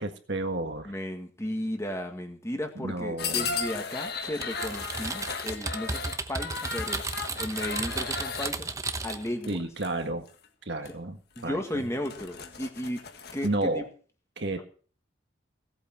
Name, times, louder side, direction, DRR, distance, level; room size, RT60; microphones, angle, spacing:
voice 1, 0.0-0.9 2.8-3.6 9.5-10.3 10.6-11.8 13.4-13.9 14.4-14.6, right 2 dB, 60° right, 6 dB, 1.7 m, -31 dB
voice 2, 0.9-7.0 7.4-8.7 9.0-9.6 11.4-13.0 13.3-13.5 13.7-13.8 14.5-14.6, left 1 dB, 15° left, 5 dB, 1.7 m, -34 dB
sound 1, 3.2-8.5 9.4-9.9 10.3-10.5 10.9-11.0 11.4-11.5 11.9-13.5, left 5 dB, 55° left, 1.6 m, -35 dB
Typing, 4.4-9.3, right 3 dB, 15° right, 0.8 m, -34 dB
17.0 x 8.4 x 6.0 m, 0.41 s
head